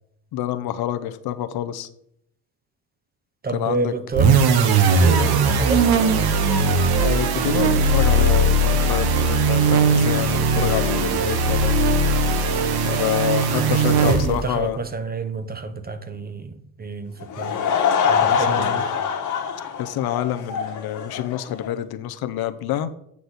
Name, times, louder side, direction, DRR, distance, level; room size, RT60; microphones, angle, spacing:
voice 1, 0.3-1.9 3.5-3.9 5.0-5.3 7.0-11.8 12.8-14.8 18.2-18.8 19.8-22.9, left 11 dB, 70° left, 0.7 m, -27 dB
voice 2, 3.4-4.4 4.8-5.9 14.0-17.6 18.0-18.8, right 3 dB, 25° right, 0.9 m, -29 dB
sound 1, 4.1-14.5, right 3 dB, 70° right, 1.1 m, -19 dB
Laughter / Crowd, 17.2-21.7, left 7 dB, 50° left, 1.5 m, -24 dB
8.5 x 6.2 x 4.0 m
cardioid pair, 95°, 38 cm